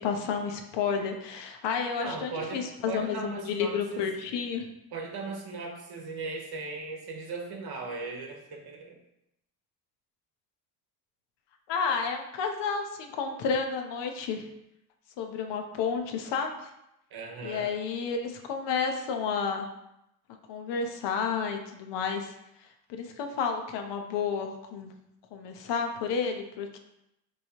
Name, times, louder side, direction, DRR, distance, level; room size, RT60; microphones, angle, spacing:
voice 1, 0.0-4.7 11.7-14.4 15.2-16.7 17.4-19.7 20.5-22.3 22.9-24.9 25.3-26.8, left 6 dB, 60° left, 4 dB, 0.7 m, -31 dB
voice 2, 1.9-4.1 4.9-9.0 17.1-17.7, right 3 dB, 50° right, 2 dB, 1.0 m, -38 dB
3.1 x 2.3 x 4.3 m, 0.84 s
hypercardioid pair, 50°, 48 cm